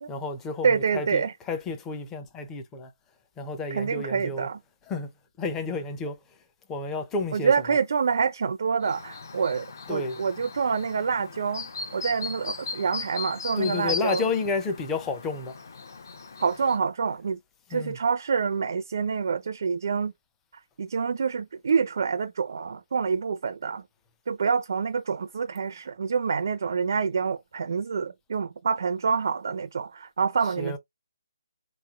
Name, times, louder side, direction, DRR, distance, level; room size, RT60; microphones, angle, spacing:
voice 1, 0.1-2.9 3.4-4.5 4.9-5.1 5.4-6.2 6.7-7.5 9.9-10.2 13.6-15.5 17.7-18.0 30.6-30.8, left 4 dB, 10° left, 0.5 m, -31 dB
voice 2, 0.6-1.3 3.7-4.6 7.3-14.3 16.4-17.4 17.7-20.1 20.8-23.8 24.3-30.8, right 5 dB, 55° right, 0.4 m, -27 dB
Chirp tweet, 8.8-16.8, left 4 dB, 55° left, 0.8 m, -38 dB
3.5 x 3.0 x 2.3 m
hypercardioid pair, 165°, 2 cm